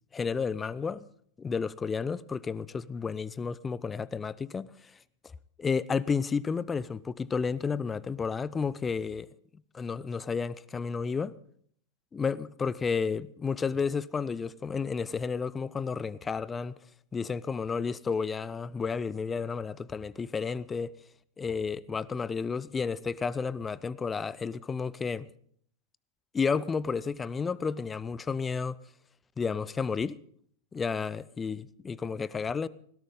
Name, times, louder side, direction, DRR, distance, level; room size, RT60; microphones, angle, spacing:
voice 1, 0.1-1.0 1.4-4.9 5.6-9.3 9.7-11.3 12.1-16.7 17.1-20.9 21.4-25.3 26.3-28.8 29.4-30.2 30.7-32.7, left 5 dB, 15° left, 0.5 m, -31 dB
18.5 x 16.5 x 3.8 m
figure-of-eight pair, 90°, 0 cm